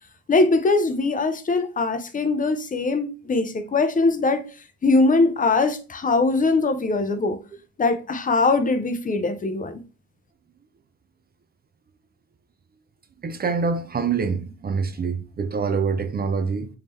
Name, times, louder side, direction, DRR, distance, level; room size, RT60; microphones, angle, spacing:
voice 1, 0.3-4.5 4.8-7.4 7.8-9.8, left 3 dB, 25° left, 0.5 m, -21 dB
voice 2, 13.2-16.7, right 5 dB, 30° right, 0.5 m, -25 dB
3.6 x 2.7 x 3.2 m
cardioid pair, 90°, 30 cm